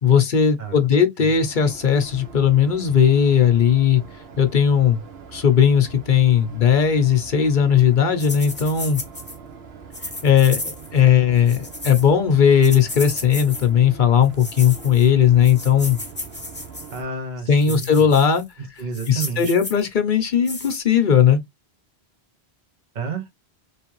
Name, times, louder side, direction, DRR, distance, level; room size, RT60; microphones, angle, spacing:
voice 1, 0.0-4.0 4.4-5.0 5.3-9.0 10.2-16.0 17.5-18.4 19.1-21.4, left 8 dB, 55° left, 0.8 m, -17 dB
voice 2, 0.6-1.3 16.9-18.1 18.8-19.5 22.9-23.3, right 5 dB, 50° right, 0.9 m, -31 dB
sound 1, 1.2-17.0, right 6 dB, 75° right, 1.0 m, -42 dB
sound 2, 8.2-9.4 9.9-11.0 11.4-12.1 12.6-13.7 14.2-15.1 15.4-17.0 17.6-18.4 18.8-19.8 20.5-20.8, left 2 dB, 10° left, 0.8 m, -34 dB
3.3 x 3.1 x 3.0 m
omnidirectional pair, 1.1 m